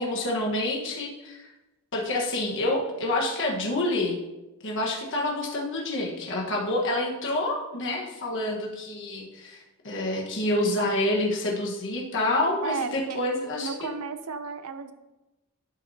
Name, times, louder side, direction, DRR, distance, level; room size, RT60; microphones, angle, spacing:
voice 1, 0.0-1.5 1.9-4.2 4.6-13.9, left 1 dB, 55° left, -1 dB, 1.4 m, -28 dB
voice 2, 12.6-13.2 13.6-14.9, right 5 dB, 75° right, 10 dB, 0.6 m, -33 dB
11.5 x 6.0 x 2.8 m, 1.0 s
head